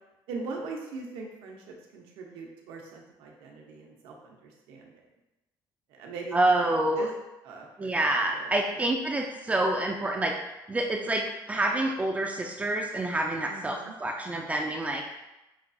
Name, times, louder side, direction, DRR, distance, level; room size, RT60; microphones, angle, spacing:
voice 1, 0.3-5.1 5.9-7.1 7.4-8.0 8.3-8.8 13.5-13.9, right 4 dB, 85° right, 0 dB, 0.8 m, -41 dB
voice 2, 6.3-7.1 7.8-10.3 10.7-15.0, right 1 dB, 15° right, 1 dB, 0.3 m, -27 dB
5.8 x 2.3 x 2.6 m, 0.98 s
cardioid pair, 125°, 9 cm